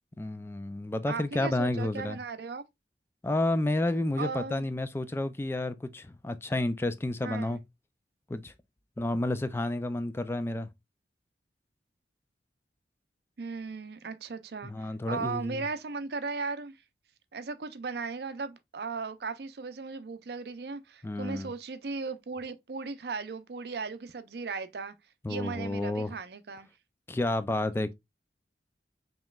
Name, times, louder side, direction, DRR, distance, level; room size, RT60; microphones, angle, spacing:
voice 1, 0.2-2.2 3.2-7.6 8.3-8.5 9.0-10.7 14.6-15.6 21.0-21.5 25.2-26.1 27.1-27.9, left 1 dB, 15° left, 0.3 m, -30 dB
voice 2, 1.1-2.6 4.2-4.6 7.2-7.6 13.4-16.7 17.3-24.9 25.3-26.7, right 4 dB, 65° right, 0.5 m, -37 dB
5.3 x 3.0 x 2.3 m
head